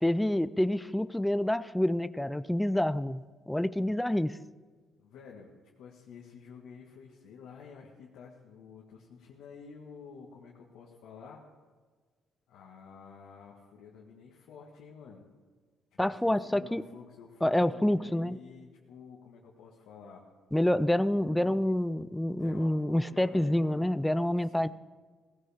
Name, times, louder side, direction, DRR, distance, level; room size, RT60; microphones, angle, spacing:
voice 1, 0.0-4.3 16.0-16.8 17.4-18.4 20.5-24.7, left 1 dB, 5° left, 14 dB, 0.4 m, -27 dB
voice 2, 5.0-5.5 5.8-11.4 12.5-15.2 16.0-20.2 21.1-21.7 22.4-24.0 24.4-24.7, left 6 dB, 80° left, -2 dB, 1.7 m, -50 dB
18.0 x 16.5 x 3.6 m, 1.5 s
cardioid pair, 90°, 0 cm